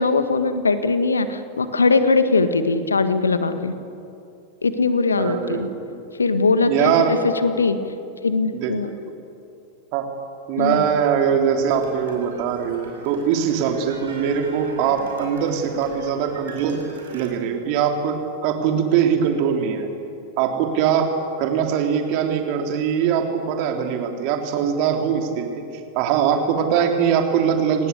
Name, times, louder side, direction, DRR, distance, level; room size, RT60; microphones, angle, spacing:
voice 1, 0.0-3.7 4.6-5.7 6.2-7.8 8.2-8.9 10.6-10.9, left 3 dB, 75° left, 10 dB, 1.6 m, -20 dB
voice 2, 5.2-6.0 6.7-7.1 8.5-8.7 9.9-10.1 10.5-16.8 17.1-18.2 18.4-19.9 20.4-25.6 25.9-27.9, right 7 dB, 45° right, 4 dB, 3.0 m, -22 dB
sound 1, 10.7-17.3, right 3 dB, 65° right, 6.1 m, -41 dB
27.5 x 19.0 x 8.3 m, 2.7 s
figure-of-eight pair, 90°, 0 cm